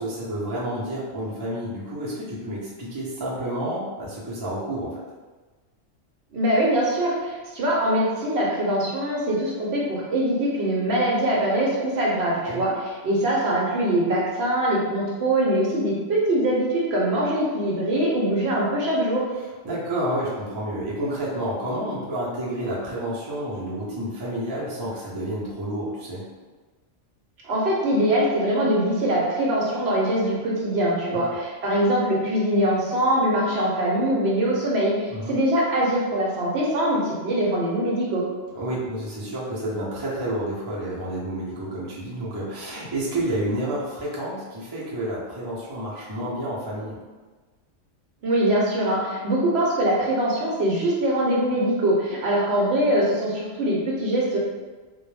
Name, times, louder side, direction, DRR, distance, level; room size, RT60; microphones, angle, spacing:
voice 1, 0.0-4.9 12.5-12.6 19.6-26.2 31.1-31.2 35.1-35.3 38.5-47.0, right 1 dB, 40° right, -7 dB, 0.3 m, -30 dB
voice 2, 6.3-19.2 27.4-38.2 48.2-54.4, right 1 dB, 65° right, -4 dB, 0.8 m, -23 dB
2.2 x 2.1 x 3.1 m, 1.3 s
omnidirectional pair, 1.3 m